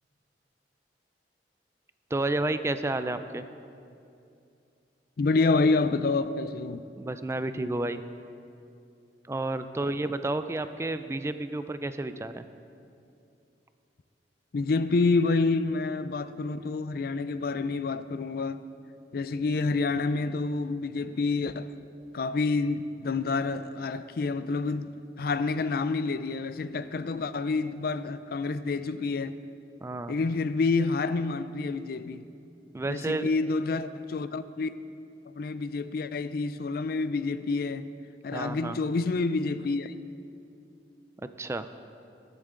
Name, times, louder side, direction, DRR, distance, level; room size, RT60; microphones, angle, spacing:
voice 1, 2.1-3.4 7.0-8.0 9.3-12.4 29.8-30.2 32.7-33.3 38.3-38.8 41.4-41.7, right 2 dB, 15° right, 0.3 m, -31 dB
voice 2, 5.2-6.8 14.5-18.6 19.1-21.7 22.1-29.4 30.1-32.2 32.9-34.7 35.3-37.9 38.2-39.9, left 3 dB, 60° left, 0.4 m, -28 dB
19.5 x 8.2 x 3.8 m
head